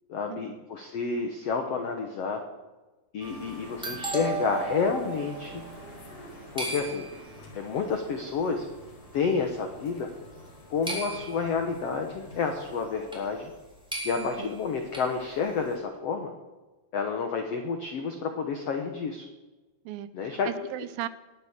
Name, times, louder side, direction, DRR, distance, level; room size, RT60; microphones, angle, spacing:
voice 1, 0.1-2.4 3.1-5.6 6.5-7.1 7.5-8.7 9.1-10.1 10.7-13.5 14.0-16.3 16.9-19.2 20.1-20.5, left 5 dB, 75° left, 5 dB, 1.4 m, -30 dB
sound 1, 3.2-12.9, left 1 dB, 55° left, 3.9 m, -48 dB
sound 2, 3.2-6.3 6.6-7.5 8.4-8.5 9.0-9.4 10.9-11.7 13.1-13.2 13.5-13.6 13.9-15.1, right 3 dB, ahead, 3.1 m, -36 dB
voice 2, 14.2-14.5 19.9-21.1, right 13 dB, 80° right, 14 dB, 2.1 m, -37 dB
19.5 x 8.1 x 7.3 m, 1.2 s
omnidirectional pair, 4.6 m